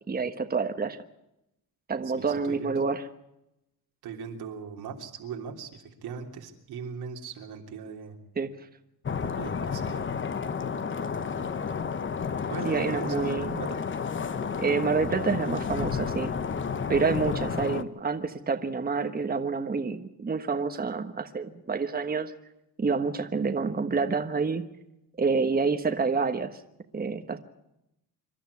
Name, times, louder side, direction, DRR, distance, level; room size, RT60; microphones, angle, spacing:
voice 1, 0.1-1.0 1.9-3.1 8.4-8.5 12.6-13.6 14.6-16.3 16.9-22.3 22.8-24.7 25.2-26.6 26.9-27.4, right 4 dB, 25° right, 7 dB, 1.3 m, -28 dB
voice 2, 2.1-2.7 4.0-8.2 9.3-10.1 12.5-13.8 17.2-17.3, right 6 dB, 85° right, 2 dB, 3.3 m, -39 dB
sound 1, 9.0-17.8, left 6 dB, 30° left, 1.0 m, -31 dB
26.5 x 12.0 x 8.4 m, 0.87 s
cardioid pair, 110°, 37 cm